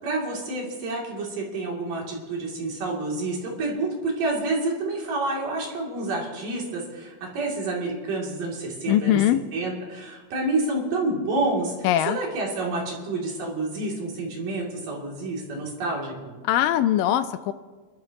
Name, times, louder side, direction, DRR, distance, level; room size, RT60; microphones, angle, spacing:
voice 1, 0.0-9.2 9.5-11.7 12.1-16.4, right 2 dB, 65° right, -3 dB, 4.4 m, -28 dB
voice 2, 8.9-9.4 11.8-12.2 16.4-17.5, left 12 dB, 80° left, 11 dB, 2.1 m, -21 dB
28.5 x 12.5 x 3.0 m, 1.4 s
omnidirectional pair, 4.2 m